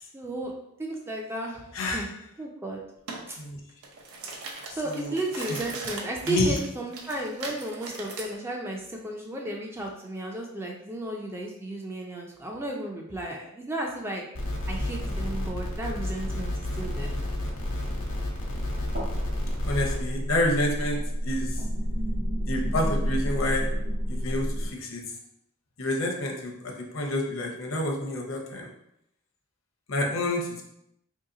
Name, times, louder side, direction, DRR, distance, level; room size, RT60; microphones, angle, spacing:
voice 1, 0.1-0.5 0.8-2.8 3.3-3.4 4.7-14.2 14.7-17.2 21.4-21.6, right 1 dB, 10° right, 0 dB, 0.3 m, -34 dB
sound 1, 3.1-3.2 3.7-8.3, right 3 dB, 85° right, 0.6 m, -39 dB
voice 2, 6.3-6.6 19.7-21.5 22.4-23.7 24.1-25.0 25.8-28.7 29.9-30.6, left 1 dB, 65° left, 1 dB, 0.6 m, -28 dB
sound 2, 14.4-20.0, left 1 dB, 85° left, 1.0 m, -31 dB
sound 3, 18.8-24.7, equal, 45° right, 0.9 m, -29 dB
2.9 x 2.8 x 3.7 m, 0.79 s
head